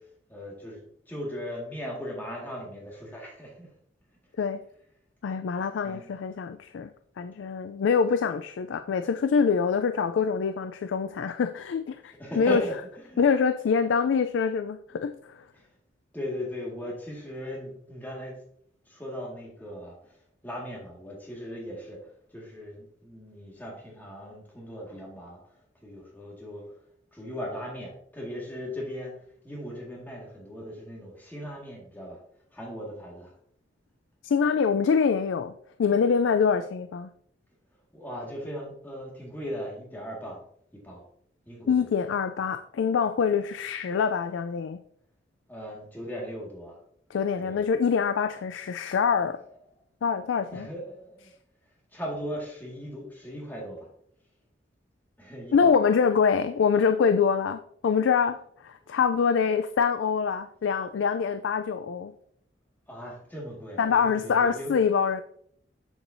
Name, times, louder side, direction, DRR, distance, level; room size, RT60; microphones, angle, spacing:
voice 1, 0.3-0.8 1.1-3.7 5.8-6.1 12.2-12.7 13.1-13.2 16.1-18.3 18.9-20.0 20.4-22.0 22.3-26.6 27.1-29.1 29.4-32.2 32.5-33.3 37.9-40.4 40.7-41.0 41.5-41.8 45.5-46.8 47.4-47.6 50.5-51.3 51.9-53.9 55.2-55.7 58.8-59.0 62.9-64.7, equal, 10° left, -3 dB, 1.7 m, -38 dB
voice 2, 5.2-6.9 7.2-12.6 13.2-15.4 34.2-35.5 35.8-37.1 41.7-44.8 47.1-49.4 50.0-50.7 55.5-62.1 63.8-65.2, left 6 dB, 85° left, 10 dB, 0.4 m, -25 dB
7.1 x 7.0 x 2.6 m, 0.67 s
head